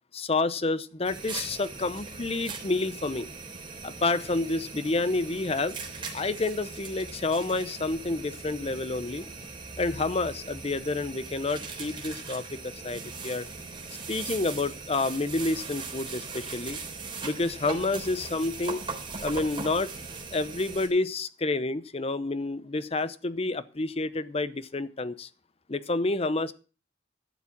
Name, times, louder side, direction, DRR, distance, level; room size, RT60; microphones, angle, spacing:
voice 1, 0.1-3.3 3.8-5.7 6.1-9.2 9.8-13.5 14.1-16.8 17.2-18.8 19.2-19.9 20.3-25.3 25.7-26.5, left 3 dB, 30° left, 15 dB, 0.7 m, -29 dB
sound 1, 1.0-20.9, right 4 dB, 30° right, 3.6 m, -40 dB
12.5 x 7.2 x 7.2 m, 0.37 s
head